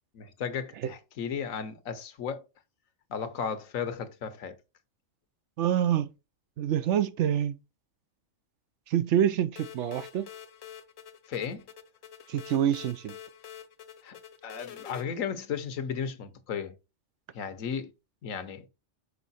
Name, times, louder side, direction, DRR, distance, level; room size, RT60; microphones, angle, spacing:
voice 1, 0.1-2.5 3.1-4.6 11.3-11.7 14.0-14.2 14.4-16.7 17.3-17.9 18.2-18.6, left 7 dB, 85° left, 1.3 m, -34 dB
voice 2, 5.6-6.1 6.6-7.6 8.9-10.3 12.3-13.2, right 10 dB, 70° right, 0.9 m, -26 dB
sound 1, 9.6-15.0, left 9 dB, 60° left, 1.0 m, -47 dB
5.6 x 5.1 x 4.1 m
omnidirectional pair, 1.4 m